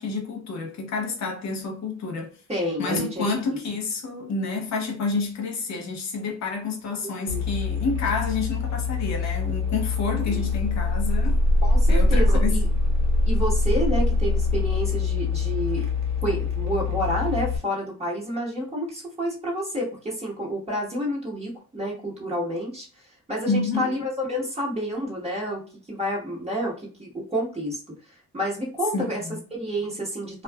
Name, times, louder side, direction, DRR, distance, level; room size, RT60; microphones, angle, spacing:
voice 1, 0.0-2.4 2.8-11.4 11.9-12.6 23.4-23.9 28.9-29.4, left 4 dB, 65° left, 0.8 m, -29 dB
voice 2, 2.5-3.4 7.3-7.8 10.1-10.5 11.6-12.7 13.2-15.9 16.2-25.6 25.9-29.2 29.5-30.4, equal, 20° right, 1.3 m, -29 dB
sound 1, 7.3-17.6, left 3 dB, 70° right, 0.8 m, -23 dB
2.4 x 2.4 x 2.3 m
cardioid pair, 90°, 30 cm